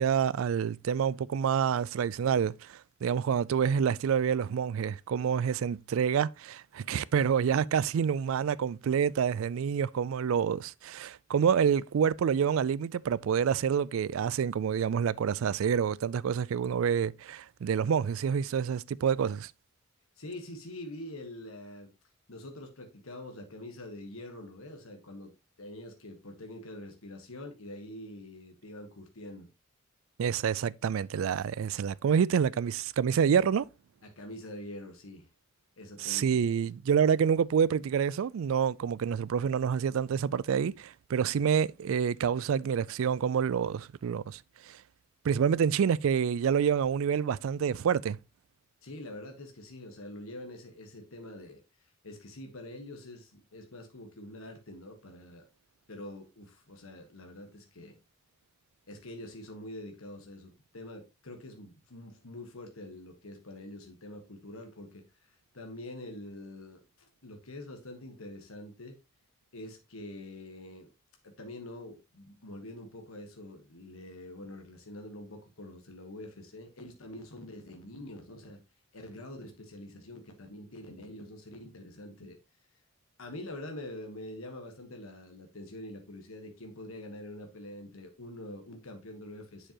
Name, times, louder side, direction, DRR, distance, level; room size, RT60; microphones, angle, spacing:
voice 1, 0.0-19.5 30.2-33.7 36.0-44.4 44.7-44.8 45.2-48.2, right 7 dB, 75° right, 0.3 m, -27 dB
voice 2, 20.2-21.9 22.3-25.3 25.6-29.5 34.0-35.3 35.8-36.5 48.8-55.5 55.9-58.0 58.9-69.0 69.5-70.9 71.2-78.6 78.9-82.4 83.2-89.7, left 1 dB, 85° left, 1.4 m, -45 dB
7.6 x 6.7 x 2.9 m
head